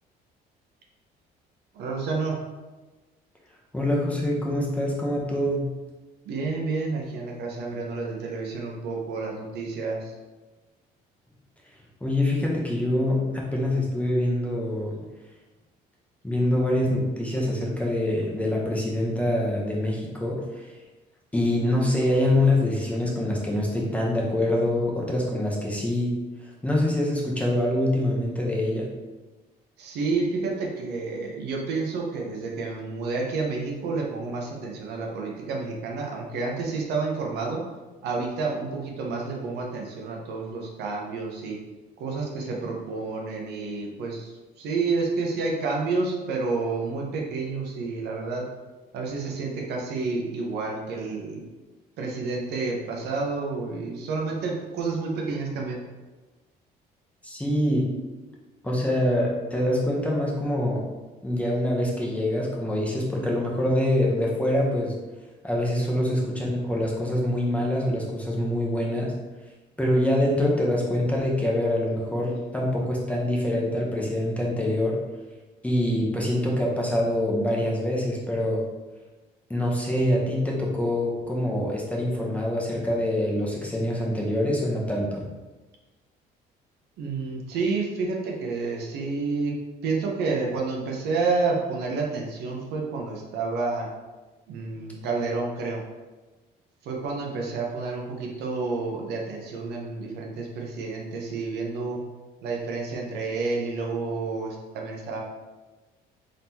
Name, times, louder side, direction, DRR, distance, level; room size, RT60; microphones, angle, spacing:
voice 1, 1.7-2.4 6.2-10.1 29.8-37.6 38.0-41.6 42.0-44.3 44.6-48.5 48.9-51.4 52.0-55.8 87.0-89.5 89.8-93.9 94.5-95.8 96.8-102.0 102.4-105.2, right 4 dB, 75° right, -1 dB, 0.9 m, -29 dB
voice 2, 3.7-5.7 12.0-14.9 16.2-20.7 21.3-26.1 26.4-28.9 57.2-57.9 58.6-60.9 61.2-64.9 65.4-69.1 69.8-75.0 75.6-78.7 79.5-85.2, left 1 dB, 10° left, -3 dB, 0.9 m, -25 dB
3.8 x 3.6 x 2.9 m, 1.2 s
cardioid pair, 110°, 17 cm